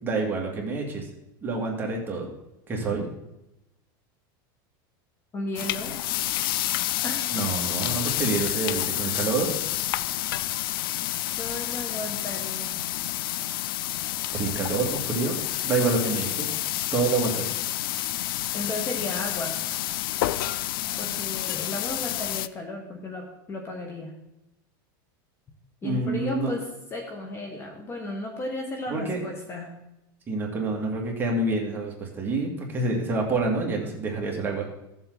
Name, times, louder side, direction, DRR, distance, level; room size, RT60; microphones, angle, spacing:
voice 1, 0.0-1.0 1.4-2.3 2.7-3.1 7.3-9.5 14.3-15.4 15.6-16.5 16.9-17.5 25.8-26.5 28.9-29.2 30.3-34.6, right 3 dB, 15° right, -1 dB, 2.2 m, -27 dB
voice 2, 5.3-5.9 7.0-7.4 8.3-8.5 11.4-12.8 18.5-19.6 21.0-24.1 25.8-29.7, left 2 dB, 20° left, 2 dB, 1.3 m, -34 dB
sound 1, 5.6-22.5, left 14 dB, 80° left, 0.4 m, -29 dB
14.5 x 7.3 x 4.0 m, 0.88 s
supercardioid pair, 150°, 12 cm